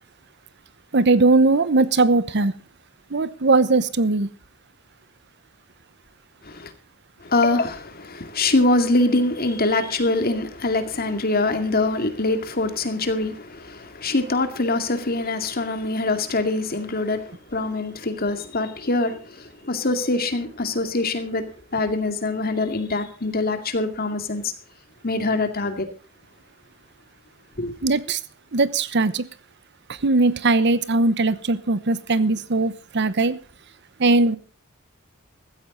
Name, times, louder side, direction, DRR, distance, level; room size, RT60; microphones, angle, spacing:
voice 1, 0.9-2.6 3.1-4.3 27.8-28.2 28.5-29.3 29.9-33.4 34.0-34.4, right 3 dB, 55° right, 0.9 m, -19 dB
voice 2, 7.2-24.5 25.0-25.9 27.6-27.7, left 2 dB, 45° left, 2.3 m, -24 dB
15.5 x 14.0 x 3.9 m
head